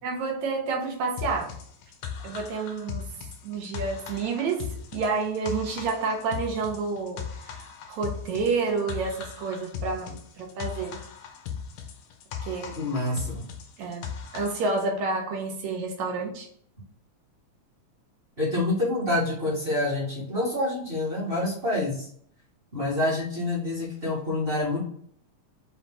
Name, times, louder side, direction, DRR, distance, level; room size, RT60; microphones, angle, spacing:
voice 1, 0.0-1.5 2.2-3.0 3.4-4.6 4.9-7.2 7.5-11.0 12.4-12.7 13.8-14.1 14.3-16.5, right 4 dB, 75° right, 1 dB, 2.0 m, -29 dB
sound 1, 1.2-14.9, left 7 dB, 80° left, 2.0 m, -38 dB
voice 2, 12.7-13.4 18.4-22.1 22.7-24.8, left 2 dB, 25° right, -7 dB, 1.4 m, -27 dB
5.2 x 3.1 x 3.2 m, 0.62 s
omnidirectional pair, 3.5 m